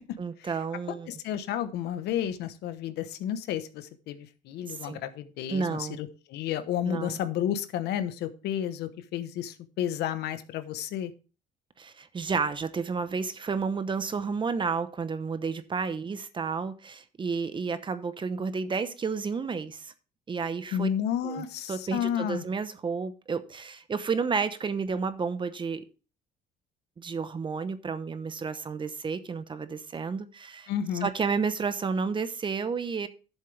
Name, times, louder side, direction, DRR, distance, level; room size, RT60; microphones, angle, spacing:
voice 1, 0.2-1.1 4.7-5.0 5.5-6.0 6.8-7.2 11.8-19.9 20.3-20.9 21.2-25.8 27.0-30.7 31.0-33.1, right 5 dB, 30° right, 12 dB, 0.9 m, -31 dB
voice 2, 0.9-11.1 20.7-22.4 30.7-31.1, left 10 dB, 80° left, 11 dB, 1.1 m, -32 dB
11.5 x 7.5 x 3.3 m, 0.34 s
cardioid pair, 110°, 17 cm